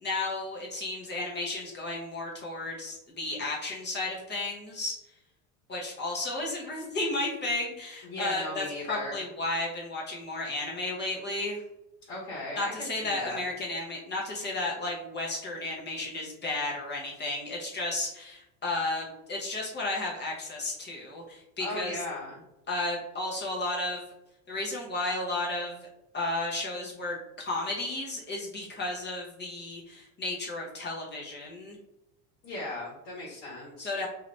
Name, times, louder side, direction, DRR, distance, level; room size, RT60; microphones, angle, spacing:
voice 1, 0.0-4.9 5.7-11.6 12.6-22.0 22.7-24.0 24.5-25.9 26.1-31.8 33.3-33.4 33.8-34.1, left 2 dB, 25° left, -2 dB, 0.8 m, -33 dB
voice 2, 8.0-9.2 12.1-13.4 21.6-22.4 32.4-33.9, left 2 dB, 60° left, -5 dB, 1.3 m, -37 dB
2.8 x 2.4 x 3.1 m, 0.91 s
hypercardioid pair, 95°, 41 cm